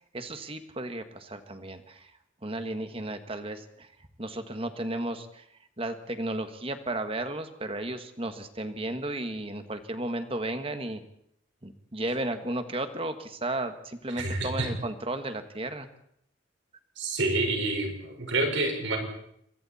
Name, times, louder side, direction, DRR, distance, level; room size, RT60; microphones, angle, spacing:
voice 1, 0.1-2.1 2.4-3.9 4.2-5.4 5.8-11.0 11.6-15.9, right 1 dB, 30° right, 8 dB, 1.6 m, -34 dB
voice 2, 14.2-14.7 17.0-19.0, right 2 dB, 70° right, 2 dB, 5.1 m, -28 dB
27.5 x 23.0 x 4.3 m, 0.72 s
head